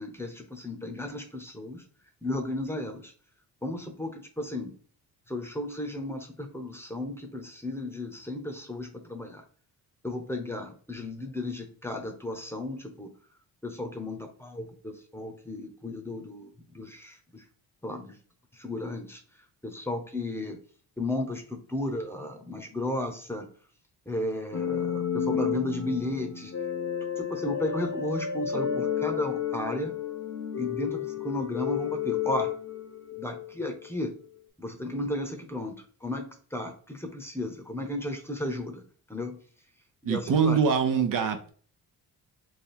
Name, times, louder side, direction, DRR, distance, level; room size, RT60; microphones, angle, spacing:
voice 1, 0.0-1.8 2.2-3.1 3.6-4.7 5.3-9.4 10.0-13.1 13.6-17.4 17.8-18.2 18.5-19.2 19.6-20.6 21.0-23.5 24.1-26.5 27.2-29.9 30.6-32.5 33.1-34.2 34.6-38.8 39.1-39.4 40.1-40.6, left 1 dB, 5° left, 4 dB, 0.8 m, -34 dB
sound 1, 24.5-33.5, left 8 dB, 35° left, 0.8 m, -31 dB
voice 2, 40.0-41.5, right 6 dB, 55° right, 6 dB, 0.6 m, -24 dB
3.5 x 2.3 x 4.3 m, 0.43 s
cardioid pair, 100°, 38 cm